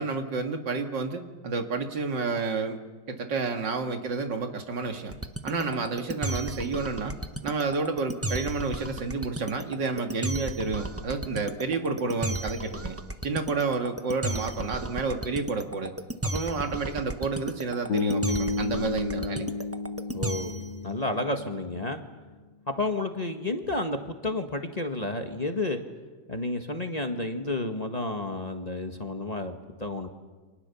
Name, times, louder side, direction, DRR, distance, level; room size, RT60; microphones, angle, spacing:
voice 1, 0.0-2.8 3.1-5.2 5.4-7.2 7.4-13.0 13.2-15.9 16.2-19.5, right 4 dB, 75° right, 5 dB, 2.6 m, -30 dB
sound 1, 5.1-20.7, right 1 dB, 15° right, 0.5 m, -34 dB
Bass guitar, 17.9-22.0, left 3 dB, 85° left, 3.0 m, -31 dB
voice 2, 20.1-22.0 22.7-25.8 26.3-30.1, left 2 dB, 25° left, 5 dB, 1.6 m, -31 dB
29.5 x 25.5 x 7.1 m, 1.3 s
omnidirectional pair, 1.9 m